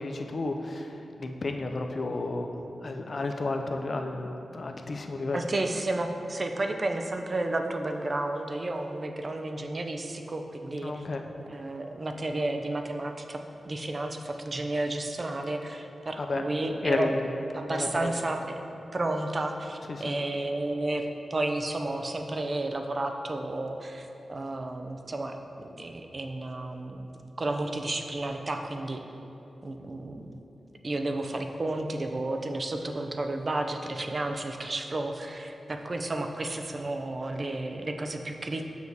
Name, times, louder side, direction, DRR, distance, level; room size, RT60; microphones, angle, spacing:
voice 1, 0.0-2.5 2.8-5.5 10.8-11.3 16.2-16.4 16.8-17.3 17.7-18.1 19.9-20.2, left 3 dB, 45° left, 5 dB, 0.4 m, -32 dB
voice 2, 5.3-10.9 11.5-17.1 17.5-18.6 18.9-29.0 29.6-30.4 30.8-38.7, right 2 dB, 35° right, 5 dB, 0.4 m, -32 dB
6.9 x 6.1 x 2.7 m, 2.9 s
wide cardioid pair, 110°, 0 cm